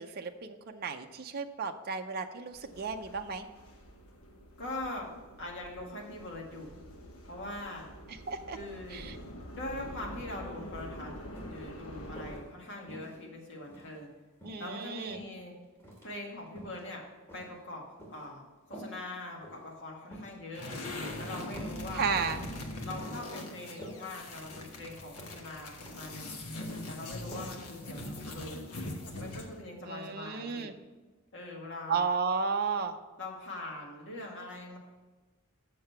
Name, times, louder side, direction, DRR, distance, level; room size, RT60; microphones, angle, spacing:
voice 1, 0.0-3.5 8.1-8.6 8.9-9.2 14.4-15.2 21.9-22.4 29.9-30.7 31.9-33.0, right 5 dB, 45° right, 5 dB, 0.5 m, -33 dB
sound 1, 2.5-12.4, equal, 70° left, 1.2 m, -47 dB
voice 2, 4.6-5.1 5.4-6.8 7.3-7.9 8.5-9.0 9.5-11.1 11.4-14.1 14.6-15.5 16.0-17.0 17.3-17.8 18.1-18.4 18.7-20.6 21.2-22.4 22.8-26.4 26.9-28.6 29.2-30.7 31.3-32.1 33.2-34.8, left 2 dB, 55° left, -1 dB, 1.9 m, -42 dB
sound 2, 10.1-10.2 10.6-10.8 11.3-12.4 12.9-14.0 14.4-15.3 15.8-16.1 16.5-16.8 17.3-18.3 18.7-19.0 19.4-19.7 20.1-20.3 20.8-21.1 21.6-21.8 22.2-22.6 23.0-23.3 23.6-24.0 24.5-24.8 25.2-25.4 25.9-26.1 26.4-26.8 27.3-27.5 27.9-28.0, equal, 10° left, 2.3 m, -47 dB
sound 3, 20.5-29.6, left 1 dB, 90° left, 1.2 m, -41 dB
7.7 x 6.6 x 5.7 m, 1.2 s
head